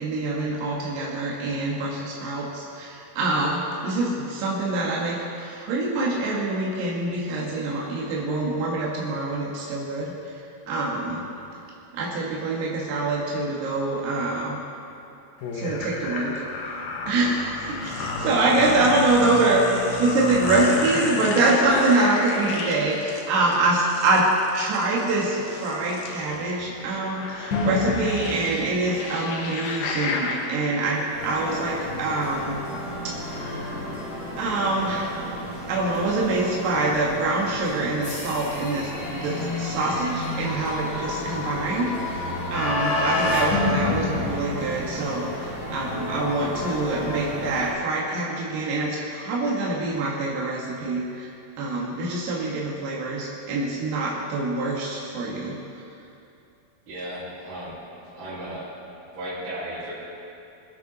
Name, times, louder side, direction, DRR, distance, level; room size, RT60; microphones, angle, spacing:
voice 1, 0.0-11.3 11.9-14.6 15.5-16.7 17.1-32.6 33.1-33.6 34.4-35.2 35.7-51.3 51.6-55.8, right 2 dB, 85° right, -4 dB, 3.7 m, -25 dB
sound 1, 15.4-30.4, left 3 dB, 75° left, 3.0 m, -32 dB
sound 2, 27.5-45.2, left 2 dB, 55° left, 2.8 m, -31 dB
sound 3, 31.1-47.7, left 1 dB, 25° left, 3.8 m, -34 dB
voice 2, 56.9-57.8 58.1-58.7 59.1-59.9, right 1 dB, 55° right, -11 dB, 4.5 m, -35 dB
22.5 x 9.5 x 4.1 m, 2.6 s
omnidirectional pair, 4.6 m